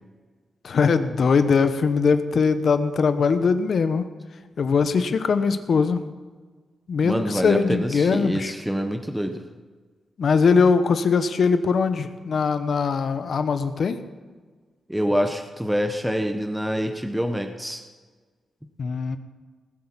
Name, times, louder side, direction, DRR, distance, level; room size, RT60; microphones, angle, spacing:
voice 1, 0.6-4.1 4.6-6.0 6.9-8.5 10.2-14.0 18.8-19.2, left 5 dB, 65° left, 10 dB, 1.2 m, -21 dB
voice 2, 7.0-9.5 14.9-17.8, equal, 5° right, 5 dB, 1.2 m, -26 dB
19.0 x 8.0 x 7.5 m, 1.4 s
cardioid pair, 75°, 0 cm